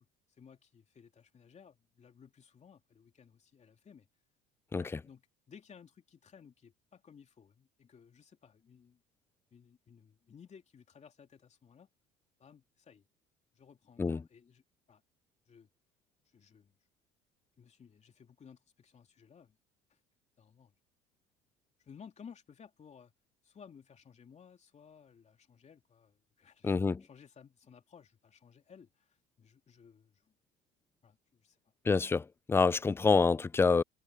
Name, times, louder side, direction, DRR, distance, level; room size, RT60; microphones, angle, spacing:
voice 1, 0.0-4.1 4.8-9.0 9.5-11.9 12.4-13.0 13.5-14.6 14.9-15.0 15.5-15.7 16.2-16.7 17.6-19.6 19.9-20.0 20.4-20.7 21.8-23.1 23.4-30.3 31.0-31.6, left 7 dB, 35° left, 3.0 m, -57 dB
voice 2, 26.6-27.0 31.9-33.8, left 4 dB, 10° left, 0.3 m, -27 dB
supercardioid pair, 90°, 20 cm